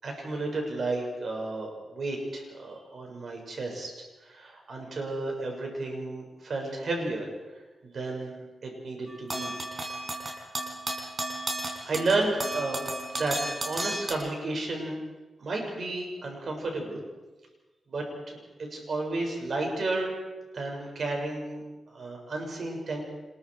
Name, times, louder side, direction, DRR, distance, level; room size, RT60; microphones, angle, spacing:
voice 1, 0.0-3.9 4.2-9.6 11.8-12.8 13.1-15.0 15.4-17.0 17.9-20.1 20.5-23.0, right 2 dB, 60° right, 1 dB, 6.4 m, -32 dB
sound 1, 9.1-14.1, right 1 dB, 40° right, 5.0 m, -34 dB
27.0 x 21.5 x 4.9 m, 1.2 s
cardioid pair, 75°, 0 cm